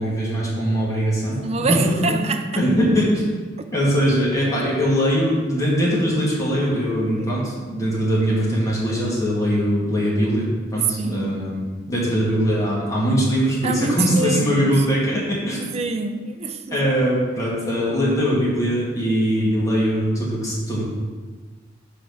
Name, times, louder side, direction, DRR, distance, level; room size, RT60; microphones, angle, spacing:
voice 1, 0.0-1.4 1.7-1.8 2.1-3.3 3.7-15.6 16.7-20.8, equal, 20° left, -6 dB, 1.8 m, -21 dB
voice 2, 1.4-2.5 3.6-3.7 7.2-7.4 10.7-11.6 13.6-14.9 15.6-16.9, right 4 dB, 35° right, 7 dB, 0.4 m, -26 dB
4.9 x 4.3 x 5.4 m, 1.4 s
head